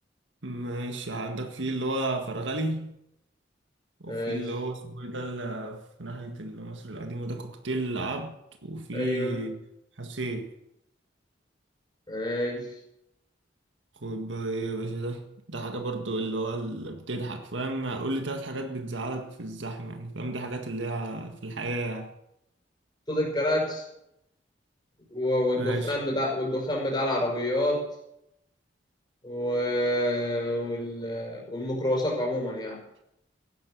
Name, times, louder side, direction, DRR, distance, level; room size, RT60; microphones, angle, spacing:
voice 1, 0.4-3.0 4.0-9.6 10.0-10.5 14.0-22.1 25.6-25.9, right 2 dB, 90° right, 1.8 m, -33 dB
voice 2, 4.1-4.4 8.9-9.4 12.1-12.7 23.1-23.8 25.1-27.8 29.2-32.8, left 1 dB, 25° left, 5.7 m, -28 dB
16.5 x 12.0 x 6.6 m
head